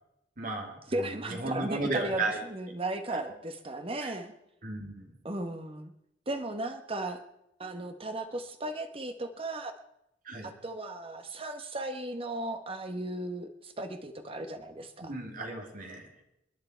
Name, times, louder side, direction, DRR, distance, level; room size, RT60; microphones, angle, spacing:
voice 1, 0.4-2.4 3.1-3.3 4.0-4.1 4.6-5.2 10.2-10.5 15.0-16.1, right 2 dB, 45° right, 2 dB, 2.7 m, -35 dB
voice 2, 0.9-4.3 5.2-5.9 6.3-7.2 7.6-9.7 10.4-15.1, right 1 dB, 30° right, 7 dB, 1.2 m, -36 dB
28.5 x 9.6 x 4.5 m, 0.84 s
head